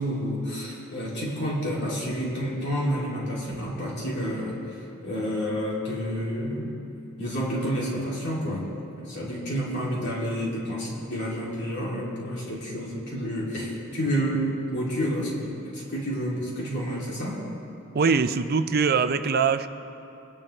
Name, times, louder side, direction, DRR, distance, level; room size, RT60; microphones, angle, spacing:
voice 1, 0.0-4.8 5.0-6.7 7.2-8.7 9.0-17.4, equal, 55° left, -5 dB, 2.8 m, -29 dB
voice 2, 17.9-19.7, right 5 dB, 45° right, 10 dB, 0.5 m, -22 dB
23.5 x 10.5 x 3.3 m, 2.9 s
head